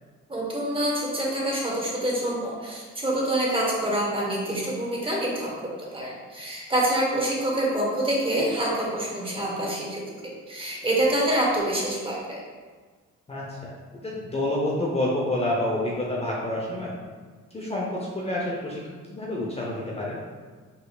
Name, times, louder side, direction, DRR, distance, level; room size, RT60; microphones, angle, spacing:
voice 1, 0.3-5.5 5.8-12.4, right 1 dB, 15° right, -3 dB, 1.3 m, -26 dB
voice 2, 13.3-16.9 17.5-18.8 19.1-20.2, left 1 dB, 20° left, -4 dB, 0.8 m, -28 dB
5.3 x 4.1 x 2.4 m, 1.5 s
cardioid pair, 90°, 30 cm